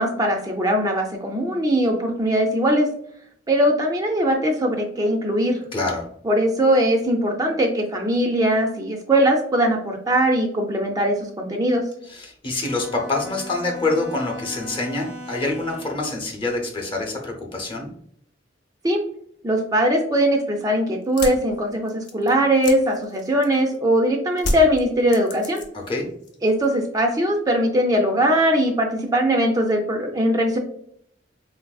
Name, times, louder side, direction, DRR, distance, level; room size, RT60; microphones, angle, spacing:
voice 1, 0.0-2.9 3.5-5.6 6.2-11.8 18.8-19.0 19.4-25.6 26.4-30.6, equal, 20° right, 2 dB, 0.3 m, -20 dB
voice 2, 5.7-6.0 12.1-17.9 25.7-26.1, left 2 dB, 30° left, 1 dB, 0.6 m, -26 dB
Bowed string instrument, 12.6-16.2, equal, 85° right, 0.6 m, -38 dB
sound 1, 21.0-23.8 24.4-25.9 26.2-26.8, left 1 dB, 70° left, 0.6 m, -30 dB
3.8 x 2.5 x 2.3 m, 0.66 s
head